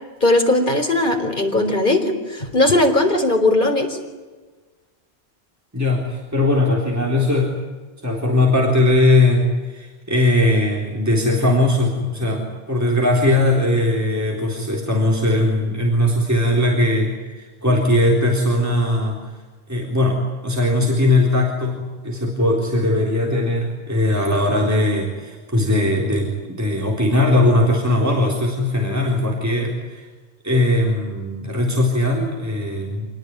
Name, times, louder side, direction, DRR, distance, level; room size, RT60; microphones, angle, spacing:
voice 1, 0.2-4.0, left 2 dB, 50° left, 4 dB, 4.0 m, -18 dB
voice 2, 5.7-7.6 8.0-19.2 19.7-30.1 30.4-33.1, left 1 dB, 15° right, -1 dB, 3.9 m, -19 dB
26.5 x 19.5 x 9.6 m, 1.3 s
omnidirectional pair, 1.1 m